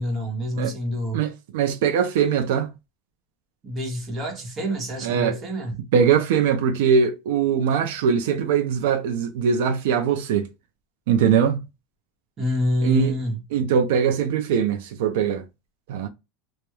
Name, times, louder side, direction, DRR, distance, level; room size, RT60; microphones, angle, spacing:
voice 1, 0.0-1.2 3.6-5.8 12.4-13.4, equal, 20° right, 0.9 m, -27 dB
voice 2, 1.1-2.7 5.0-5.4 5.9-10.5 11.1-11.6 12.8-13.2 13.5-15.4 15.9-16.1, right 7 dB, 75° right, 0.4 m, -21 dB
2.3 x 2.1 x 2.9 m
supercardioid pair, 155°, 0 cm